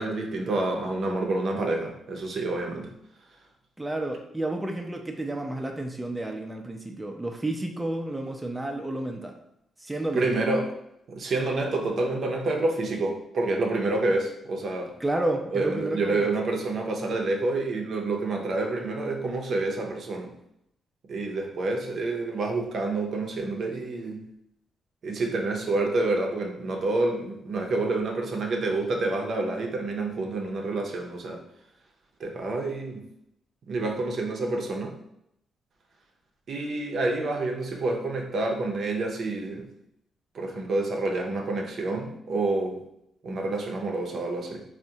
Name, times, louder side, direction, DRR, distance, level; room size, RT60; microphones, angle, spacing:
voice 1, 0.0-2.9 10.1-10.7 11.1-14.9 15.5-20.3 21.1-24.2 25.0-31.4 32.2-33.0 33.7-34.9 36.5-39.7 40.3-42.8 43.2-44.6, right 2 dB, 65° right, 1 dB, 0.6 m, -28 dB
voice 2, 3.8-9.3 9.8-10.2 15.0-16.3, right 1 dB, 15° right, 2 dB, 0.4 m, -31 dB
3.5 x 2.1 x 2.7 m, 0.78 s
cardioid pair, 65°, 0 cm